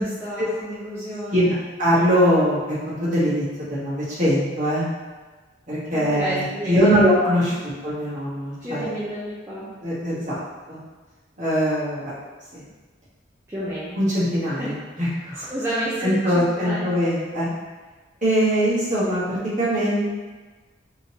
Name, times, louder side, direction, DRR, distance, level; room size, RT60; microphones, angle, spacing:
voice 1, 0.0-1.5 5.9-6.9 8.6-9.7 13.5-13.9 14.6-14.7 15.4-16.9, right 1 dB, 15° right, -10 dB, 0.5 m, -30 dB
voice 2, 1.3-4.8 5.7-8.9 9.8-10.4 10.7-10.8 11.4-12.1 12.5-12.6 13.9-15.5 16.0-17.5 18.2-20.0, equal, 40° right, -9 dB, 1.2 m, -22 dB
3.7 x 2.9 x 2.8 m, 1.3 s
head